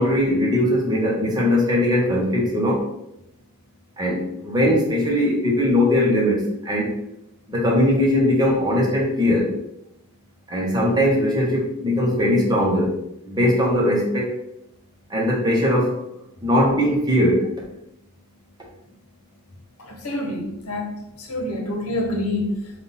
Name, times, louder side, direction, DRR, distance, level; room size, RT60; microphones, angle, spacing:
voice 1, 0.0-2.8 4.0-6.9 7.5-9.5 10.5-12.9 13.2-14.3 15.1-16.0 16.4-17.5, left 1 dB, 20° right, -3 dB, 0.9 m, -20 dB
voice 2, 19.8-22.6, left 1 dB, 75° left, 1 dB, 0.9 m, -27 dB
3.7 x 2.4 x 4.0 m, 0.83 s
head